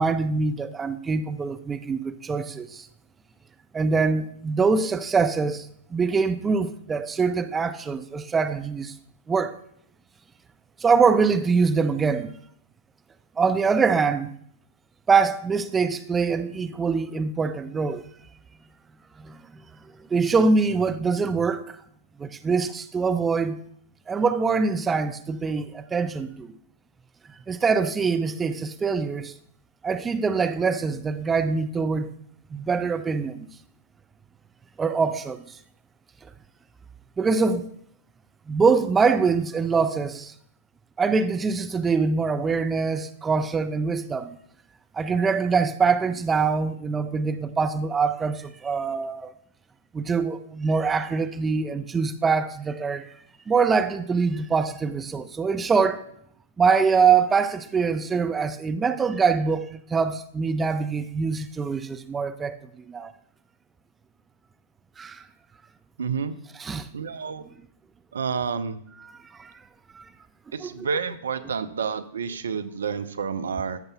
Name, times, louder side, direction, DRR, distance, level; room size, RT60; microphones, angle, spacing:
voice 1, 0.0-2.9 3.7-8.9 9.3-9.6 10.8-12.3 13.4-14.3 15.1-18.0 19.2-19.4 20.1-21.8 22.2-23.6 24.1-26.5 27.5-29.3 29.8-32.1 32.5-33.4 34.8-35.6 37.2-37.7 38.5-40.3 41.0-44.4 44.9-49.3 49.9-53.1 53.5-56.0 56.6-62.6 62.9-63.1 65.0-65.2 66.5-66.9 69.0-69.5 69.9-70.0 70.6-70.9, right 5 dB, 15° right, 0.4 m, -24 dB
voice 2, 66.0-66.3 66.9-67.4 68.1-68.8 70.5-73.8, right 6 dB, 65° right, 0.5 m, -29 dB
14.0 x 6.6 x 2.3 m
figure-of-eight pair, 105°, 0 cm